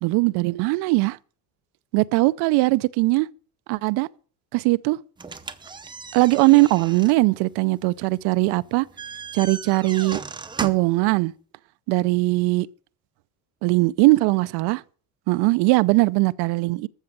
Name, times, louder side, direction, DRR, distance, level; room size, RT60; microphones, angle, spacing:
voice 1, 0.0-1.2 1.9-3.3 3.7-4.1 4.5-5.0 6.1-8.9 9.3-10.2 10.6-11.3 11.9-12.7 13.6-14.8 15.3-16.9, right 22 dB, 70° right, 0.7 m, -20 dB
sound 1, 5.2-11.0, right 4 dB, 10° right, 0.7 m, -37 dB
14.0 x 6.5 x 8.6 m
cardioid pair, 155°, 41 cm